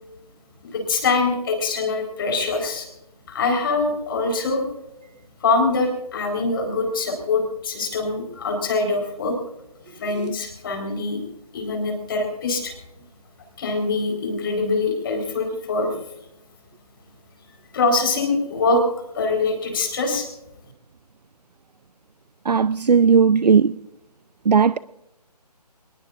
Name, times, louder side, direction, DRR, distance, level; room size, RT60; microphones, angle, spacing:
voice 1, 0.6-2.9 3.3-4.6 5.4-9.3 10.0-11.2 11.5-12.7 13.6-15.9 17.7-18.8 19.1-20.3, left 3 dB, 35° left, 4.2 m, -23 dB
voice 2, 22.4-23.8 24.5-24.8, right 6 dB, 75° right, 0.6 m, -17 dB
26.5 x 20.0 x 2.5 m
figure-of-eight pair, 160°, 21 cm